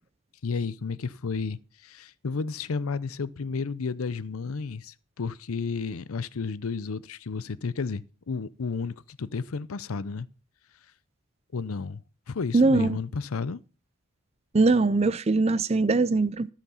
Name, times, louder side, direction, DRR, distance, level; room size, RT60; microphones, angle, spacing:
voice 1, 0.4-10.3 11.5-12.0 12.3-13.6, left 4 dB, 80° left, 0.6 m, -32 dB
voice 2, 12.5-13.0 14.5-16.5, right 3 dB, 30° right, 0.5 m, -21 dB
13.0 x 7.4 x 5.6 m
head